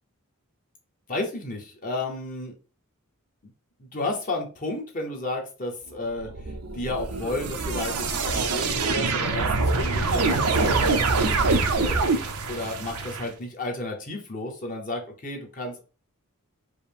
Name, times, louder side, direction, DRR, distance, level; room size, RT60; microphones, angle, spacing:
voice 1, 1.1-2.5 3.8-12.0 12.5-15.8, left 2 dB, 35° left, 1 dB, 0.8 m, -32 dB
sound 1, 6.2-13.3, right 3 dB, 85° right, 0.6 m, -25 dB
4.8 x 2.0 x 3.4 m, 0.35 s
head